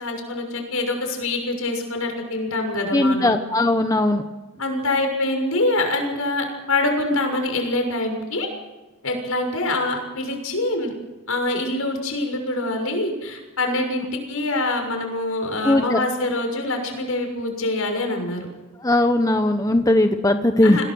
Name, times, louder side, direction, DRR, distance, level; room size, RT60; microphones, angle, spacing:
voice 1, 0.0-3.4 4.6-8.5 9.0-10.9 11.3-18.5 20.6-20.8, left 2 dB, 70° left, 3 dB, 6.6 m, -25 dB
voice 2, 2.9-4.2 15.6-16.0 18.8-20.8, left 1 dB, 15° left, 6 dB, 1.0 m, -18 dB
27.0 x 19.0 x 6.3 m, 1.1 s
head